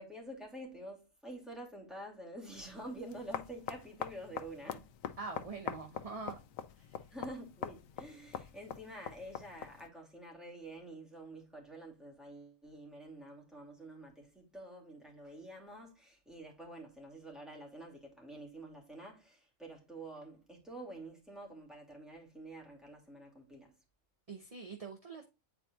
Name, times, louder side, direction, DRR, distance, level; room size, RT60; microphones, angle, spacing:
voice 1, 0.0-4.9 7.1-23.7, right 1 dB, ahead, 2.4 m, -48 dB
sound 1, 2.5-9.9, left 8 dB, 90° left, 1.1 m, -44 dB
voice 2, 5.2-6.4 6.8-7.0 24.3-25.2, right 4 dB, 35° right, 0.8 m, -44 dB
9.5 x 4.2 x 2.4 m
omnidirectional pair, 1.4 m